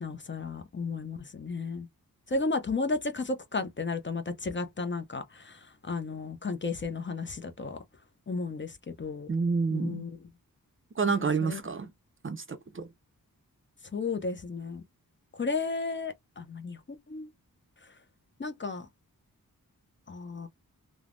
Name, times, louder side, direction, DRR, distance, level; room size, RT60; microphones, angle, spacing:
voice 1, 0.0-1.9 2.3-7.8 8.3-8.7 9.0-9.3 9.7-10.2 11.1-11.6 13.9-14.8 15.4-16.8 17.1-17.3 18.4-18.9 20.1-20.5, left 3 dB, 35° left, 0.5 m, -33 dB
voice 2, 9.3-10.1 11.0-11.9 12.2-12.9, right 5 dB, 35° right, 0.4 m, -29 dB
3.1 x 2.0 x 2.4 m
wide cardioid pair, 75°, 36 cm